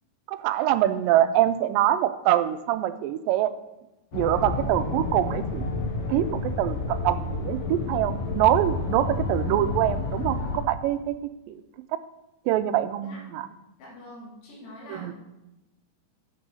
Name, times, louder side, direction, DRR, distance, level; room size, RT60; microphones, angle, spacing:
voice 1, 0.3-3.5 4.1-5.8 6.1-11.2 11.5-11.6 11.9-12.0 12.5-13.5 14.9-15.1, right 13 dB, 90° right, 12 dB, 2.3 m, -24 dB
sound 1, 4.1-10.6, left 3 dB, 70° left, 2.7 m, -30 dB
voice 2, 13.8-15.1, equal, 85° left, -4 dB, 3.8 m, -44 dB
8.2 x 6.2 x 6.2 m, 0.97 s
omnidirectional pair, 3.9 m